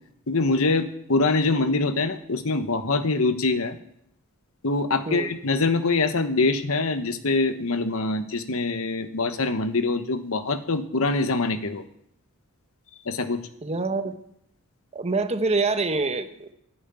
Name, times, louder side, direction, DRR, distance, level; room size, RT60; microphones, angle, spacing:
voice 1, 0.3-3.8 4.6-11.8 13.0-13.4, left 3 dB, 70° left, 9 dB, 1.2 m, -24 dB
voice 2, 13.6-14.2 14.9-16.5, right 3 dB, 30° right, 9 dB, 0.9 m, -26 dB
11.0 x 9.2 x 9.0 m, 0.75 s
head